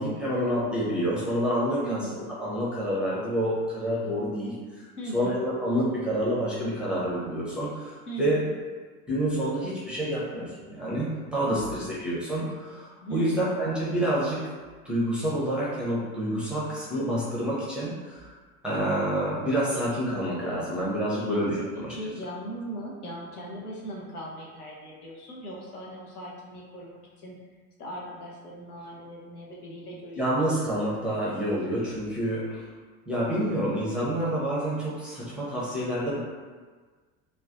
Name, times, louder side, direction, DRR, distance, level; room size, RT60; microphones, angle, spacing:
voice 1, 0.0-4.9 5.1-8.4 9.1-14.5 14.8-18.3 18.6-21.9 30.2-32.6 33.1-36.2, right 1 dB, ahead, -8 dB, 0.5 m, -28 dB
voice 2, 1.8-2.2 5.0-5.4 8.1-8.5 11.5-11.9 13.0-13.5 21.0-21.4 21.7-27.4 27.8-30.5, right 1 dB, 80° left, -4 dB, 0.6 m, -38 dB
2.3 x 2.1 x 2.5 m, 1.4 s
figure-of-eight pair, 65°, 44 cm